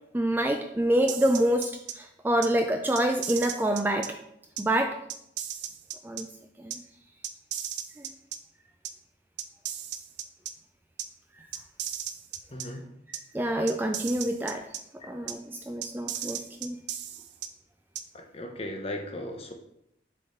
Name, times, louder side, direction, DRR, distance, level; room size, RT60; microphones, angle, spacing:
voice 1, 0.1-4.1 4.6-5.0 6.0-6.3 6.6-6.8 8.0-8.1 13.3-14.6 15.0-16.8, right 1 dB, 10° right, 4 dB, 0.3 m, -27 dB
sound 1, 1.1-1.9 2.4-2.5 3.0-4.1 4.6-4.7 5.1-6.2 6.7-6.8 7.2-8.4 8.8-8.9 9.4-10.5 11.0-11.1 11.5-12.7 13.1-13.2 13.7-14.8 15.3-15.4 15.8-17.5 18.0-18.1, right 10 dB, 75° right, 0.5 m, -35 dB
voice 2, 12.5-12.9 18.1-19.5, left 1 dB, 30° left, 3 dB, 0.8 m, -37 dB
6.5 x 3.7 x 4.2 m, 0.77 s
head